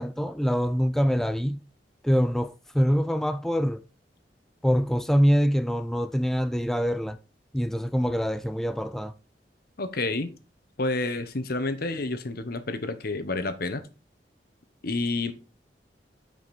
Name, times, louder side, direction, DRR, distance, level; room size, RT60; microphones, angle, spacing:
voice 1, 0.0-1.6 2.0-3.8 4.6-7.2 7.5-9.1, equal, ahead, 0.3 m, -24 dB
voice 2, 9.8-10.3 10.8-13.8 14.8-15.3, left 2 dB, 60° left, 1.1 m, -29 dB
9.7 x 5.1 x 4.2 m
head